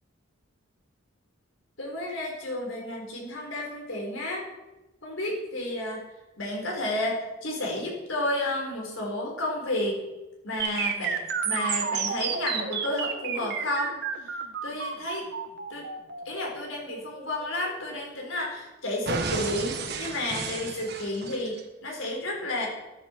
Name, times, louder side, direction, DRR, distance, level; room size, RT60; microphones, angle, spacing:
voice 1, 1.8-4.4 5.0-6.0 6.4-10.0 10.4-11.2 11.4-14.0 14.6-15.3 15.7-15.8 16.2-22.7, left 1 dB, 85° left, 0 dB, 4.2 m, -31 dB
sound 1, 10.6-18.6 19.1-21.6, right 6 dB, 55° right, 1.4 m, -32 dB
13.0 x 11.5 x 4.5 m, 1.0 s
head